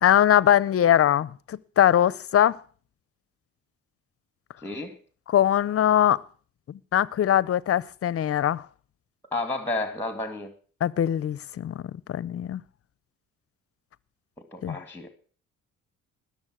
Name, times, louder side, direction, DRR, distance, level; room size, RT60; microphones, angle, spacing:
voice 1, 0.0-2.6 5.3-6.2 6.9-8.6 10.8-11.8 12.1-12.6 14.6-14.8, left 10 dB, 50° left, 0.7 m, -21 dB
voice 2, 4.6-5.0 9.3-10.5 14.5-15.1, left 2 dB, 5° left, 2.2 m, -31 dB
20.0 x 7.2 x 6.2 m
cardioid pair, 90°, 30 cm